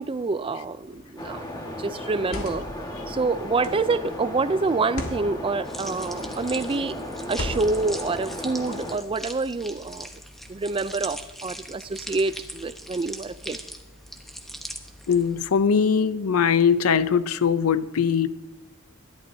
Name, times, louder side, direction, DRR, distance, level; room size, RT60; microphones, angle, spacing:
voice 1, 0.0-1.4 1.8-2.7 3.1-7.0 7.3-10.1 10.5-13.6, right 3 dB, 25° right, 15 dB, 0.4 m, -27 dB
sound 1, 0.9-1.2 2.1-2.8 3.6-4.0 4.8-5.2 6.1-6.5 7.3-7.9, left 1 dB, 70° left, 1.7 m, -35 dB
sound 2, 1.2-9.0, left 1 dB, 20° left, 1.6 m, -35 dB
sound 3, 5.6-15.5, equal, ahead, 1.0 m, -41 dB
voice 2, 15.1-18.3, left 6 dB, 85° left, 14 dB, 0.6 m, -21 dB
22.5 x 11.5 x 2.7 m, 1.0 s
head